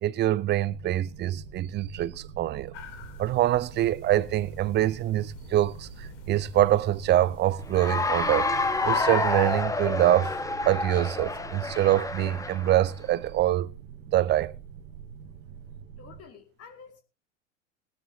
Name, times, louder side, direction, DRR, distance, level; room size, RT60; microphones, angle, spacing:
voice 1, 0.0-2.7 3.2-8.5 8.8-10.4 10.6-13.7 14.1-14.5, right 13 dB, 30° right, 0.6 m, -25 dB
sound 1, 0.7-16.2, right 6 dB, 70° right, 1.6 m, -45 dB
sound 2, 2.7-9.6, left 8 dB, 65° left, 2.1 m, -46 dB
Cheering / Applause, 7.7-12.9, left 3 dB, 10° left, 1.1 m, -29 dB
voice 2, 16.0-17.0, left 6 dB, 35° left, 2.6 m, -49 dB
19.0 x 12.5 x 2.8 m
hypercardioid pair, 85°, 39 cm